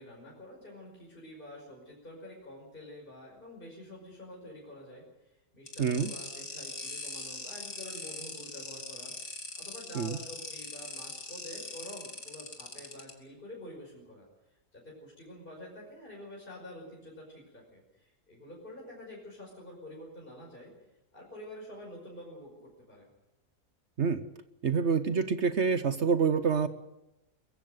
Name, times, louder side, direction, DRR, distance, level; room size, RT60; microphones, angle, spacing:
voice 1, 0.0-9.1 9.6-14.3 14.7-20.7 21.1-23.1, left 1 dB, 30° left, -2 dB, 5.7 m, -48 dB
sound 1, 5.7-13.1, left 3 dB, 55° left, 3.1 m, -41 dB
voice 2, 5.8-6.1 9.9-10.2 24.0-24.3 24.6-26.7, right 5 dB, 50° right, 12 dB, 1.1 m, -27 dB
22.5 x 15.5 x 9.4 m, 0.96 s
omnidirectional pair, 1.7 m